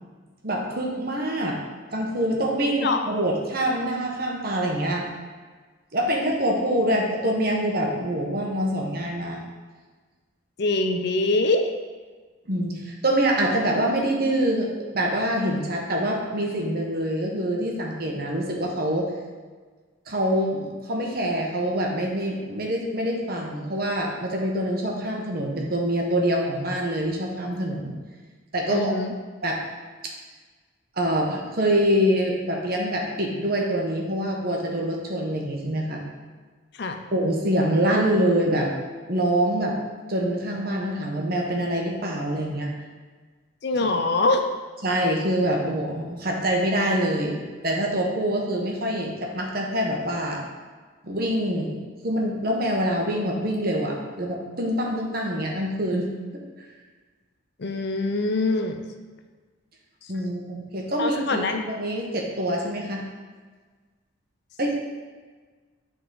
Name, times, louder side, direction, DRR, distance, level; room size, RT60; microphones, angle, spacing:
voice 1, 0.4-1.6 1.9-5.1 5.9-9.4 12.5-14.7 14.9-19.1 20.1-27.9 28.5-28.9 29.4-29.6 31.0-36.0 37.1-38.7 39.1-39.8 40.1-42.7 43.8-43.9 44.8-50.5 51.0-51.8 52.0-56.1 56.6-56.7 60.1-63.0 64.6-64.8, right 1 dB, 45° right, 0 dB, 1.1 m, -25 dB
voice 2, 10.6-11.7 28.7-29.1 36.8-37.0 43.6-44.4 57.6-58.8 61.0-61.6, left 2 dB, 55° left, 5 dB, 0.5 m, -24 dB
9.3 x 3.9 x 3.9 m, 1.4 s
head